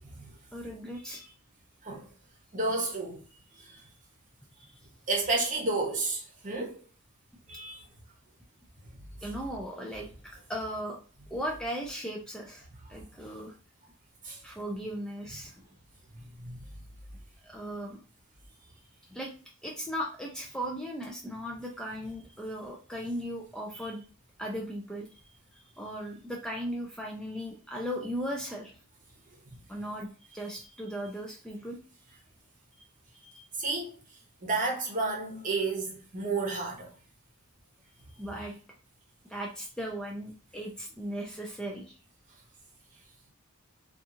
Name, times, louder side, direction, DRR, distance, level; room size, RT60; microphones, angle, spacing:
voice 1, 0.5-1.2 4.6-4.7 9.2-11.0 11.3-13.5 14.4-15.5 17.4-18.0 19.1-19.3 19.6-24.0 24.4-25.2 25.8-28.7 29.7-31.8 32.1-32.2 33.2-33.4 38.2-38.6 39.3-41.9, equal, 5° left, 0.3 m, -37 dB
voice 2, 2.5-3.2 3.7-3.8 5.1-6.8 7.5-7.8 14.2-14.4 16.1-16.6 33.6-33.9 34.4-36.9, right 3 dB, 35° right, 0.8 m, -31 dB
2.8 x 2.4 x 2.4 m
head